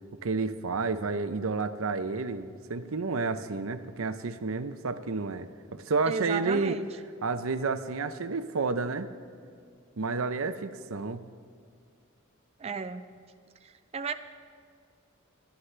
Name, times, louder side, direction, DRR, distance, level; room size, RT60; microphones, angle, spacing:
voice 1, 0.2-6.8 7.2-9.1 10.0-11.2, right 4 dB, 80° right, 10 dB, 0.7 m, -30 dB
voice 2, 6.1-6.9 12.6-13.0 13.9-14.1, right 5 dB, 30° right, 8 dB, 0.4 m, -33 dB
24.5 x 11.5 x 3.3 m, 2.2 s
head